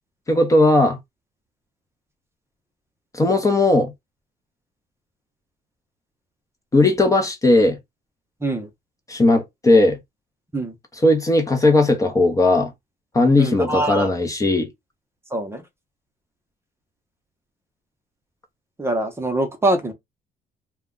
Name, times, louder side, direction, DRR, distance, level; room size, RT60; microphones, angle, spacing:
voice 1, 0.3-1.0 3.1-3.9 6.7-7.8 9.1-10.0 11.0-12.7 13.1-14.7, left 2 dB, 20° left, 0.7 m, -17 dB
voice 2, 13.4-14.1 15.3-15.6 18.8-19.9, right 1 dB, 15° right, 0.7 m, -23 dB
2.3 x 2.2 x 3.6 m
cardioid pair, 110°, 17 cm